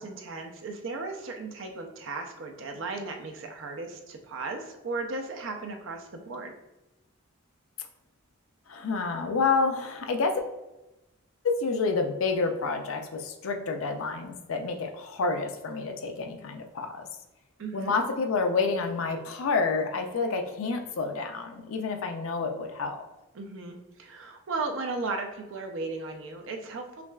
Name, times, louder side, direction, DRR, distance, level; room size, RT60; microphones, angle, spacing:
voice 1, 0.0-6.5 17.6-17.9 23.3-27.0, right 3 dB, 65° right, 4 dB, 0.5 m, -36 dB
voice 2, 8.7-10.4 11.4-17.1 17.7-23.0, left 4 dB, 80° left, 5 dB, 0.5 m, -29 dB
5.7 x 2.3 x 2.3 m, 0.99 s
head